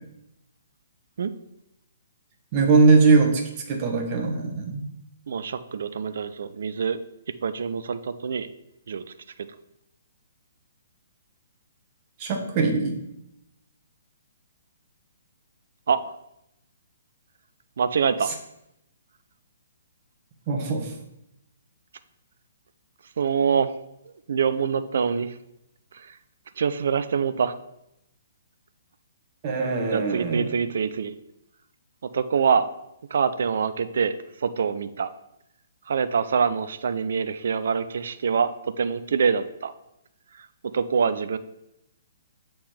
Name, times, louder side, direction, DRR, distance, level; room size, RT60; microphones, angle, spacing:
voice 1, 2.5-3.4 3.7-4.9 12.2-13.0 20.5-20.9 29.4-30.4, right 4 dB, 35° right, 3 dB, 1.1 m, -21 dB
voice 2, 5.3-7.0 7.4-8.5 8.9-9.0 15.9-16.1 17.8-18.3 23.2-23.7 24.0-25.4 25.9-26.2 26.6-27.5 29.9-31.2 32.1-32.7 33.1-35.1 35.9-38.5 38.8-39.7 40.3-40.5 40.7-41.4, right 6 dB, 55° right, 13 dB, 0.3 m, -25 dB
7.3 x 4.3 x 3.3 m, 0.83 s
figure-of-eight pair, 125°, 0 cm